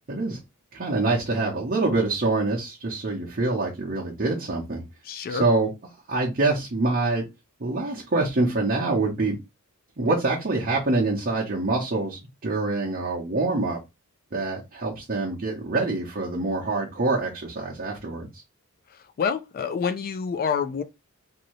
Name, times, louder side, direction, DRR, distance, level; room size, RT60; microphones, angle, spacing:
voice 1, 0.1-0.4 0.7-4.8 5.3-5.7 6.1-7.2 7.6-9.4 10.0-13.8 14.3-18.3, right 3 dB, 40° right, 0.7 m, -25 dB
voice 2, 5.0-5.5 18.9-20.8, left 6 dB, 40° left, 0.3 m, -27 dB
2.6 x 2.6 x 3.0 m
head